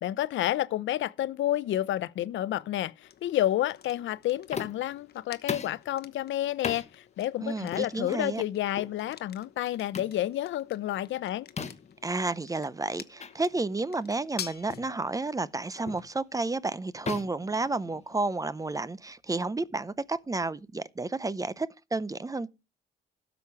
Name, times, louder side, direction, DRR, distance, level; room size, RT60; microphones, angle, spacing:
voice 1, 0.0-11.5, left 13 dB, 75° left, 0.6 m, -30 dB
sound 1, 3.0-20.8, left 9 dB, 55° left, 1.0 m, -50 dB
sound 2, 4.5-4.9 5.5-5.8 6.6-6.9 7.7-7.9 8.7-9.0 9.9-10.2 11.6-12.0 13.2-13.3 13.8-13.9 14.7-14.9 15.9-16.1 17.1-18.3, left 6 dB, 35° left, 1.3 m, -37 dB
voice 2, 7.4-8.4 12.0-22.5, right 3 dB, 15° right, 0.6 m, -31 dB
12.5 x 7.1 x 4.7 m
cardioid pair, 90°, 20 cm